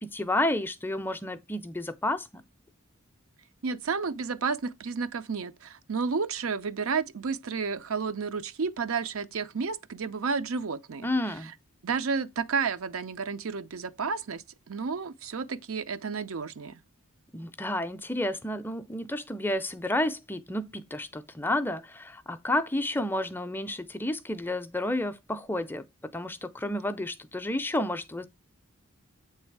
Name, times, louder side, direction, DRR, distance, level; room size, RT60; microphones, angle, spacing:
voice 1, 0.0-2.3 11.0-11.5 17.3-25.8 26.1-28.3, left 1 dB, 10° left, 0.4 m, -31 dB
voice 2, 3.6-11.1 11.4-11.5 11.8-16.7, right 5 dB, 70° right, 0.6 m, -31 dB
7.9 x 3.3 x 4.6 m
head